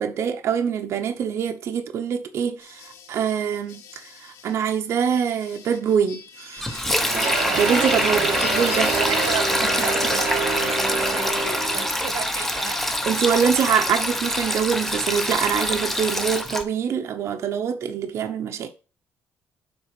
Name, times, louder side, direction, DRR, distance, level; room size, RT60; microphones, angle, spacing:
voice 1, 0.0-8.9 13.1-18.7, right 7 dB, 60° right, 1.0 m, -25 dB
sound 1, 2.6-9.4, left 6 dB, 85° left, 2.3 m, -42 dB
Sink (filling or washing), 6.6-16.6, left 1 dB, 5° left, 1.1 m, -25 dB
sound 2, 7.0-12.1, right 4 dB, 40° right, 2.7 m, -26 dB
voice 2, 8.9-12.8, right 8 dB, 80° right, 1.5 m, -33 dB
7.7 x 5.0 x 5.0 m
cardioid pair, 130°, 5 cm